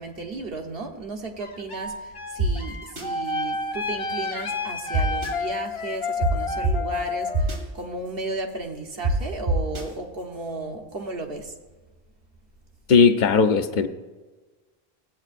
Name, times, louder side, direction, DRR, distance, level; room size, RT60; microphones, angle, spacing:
voice 1, 0.0-7.5 7.7-11.5, right 3 dB, 65° right, 3 dB, 1.3 m, -34 dB
sound 1, 1.4-7.6, left 3 dB, 70° left, 1.4 m, -30 dB
sound 2, 2.4-2.5 3.0-3.1 4.9-5.3 6.2-6.3 6.6-6.7 7.3-7.6 9.0-9.1 9.5-9.8, right 2 dB, 90° right, 1.9 m, -22 dB
voice 2, 12.9-13.9, left 5 dB, 55° left, 9 dB, 0.7 m, -17 dB
15.5 x 8.6 x 2.5 m, 1.2 s
omnidirectional pair, 1.0 m